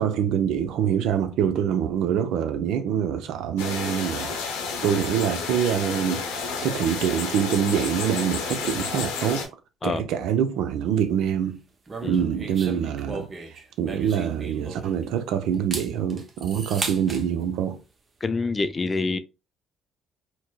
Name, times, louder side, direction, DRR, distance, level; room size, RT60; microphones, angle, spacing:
voice 1, 0.0-6.2 6.6-9.5 9.8-11.6 12.0-13.3 13.8-17.8, right 8 dB, 75° right, 0.4 m, -25 dB
sound 1, 3.6-9.5, left 5 dB, 85° left, 0.7 m, -31 dB
sound 2, 11.9-15.1 15.5-17.2, right 3 dB, 35° right, 0.7 m, -36 dB
voice 2, 18.2-19.2, left 3 dB, 30° left, 0.4 m, -26 dB
4.4 x 2.0 x 2.2 m
supercardioid pair, 60°, 0 cm